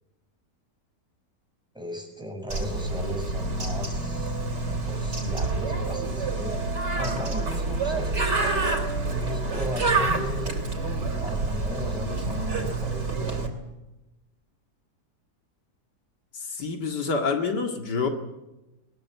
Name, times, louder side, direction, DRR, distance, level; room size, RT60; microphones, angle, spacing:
voice 1, 1.7-4.3 4.8-6.6 7.0-8.3 9.1-10.5 11.2-13.4, left 1 dB, ahead, 2 dB, 6.8 m, -36 dB
Bird, 2.5-13.5, right 3 dB, 85° right, 4.1 m, -28 dB
voice 2, 16.3-18.1, left 4 dB, 80° left, 5 dB, 2.7 m, -27 dB
21.5 x 21.0 x 9.6 m, 1.0 s
omnidirectional pair, 1.8 m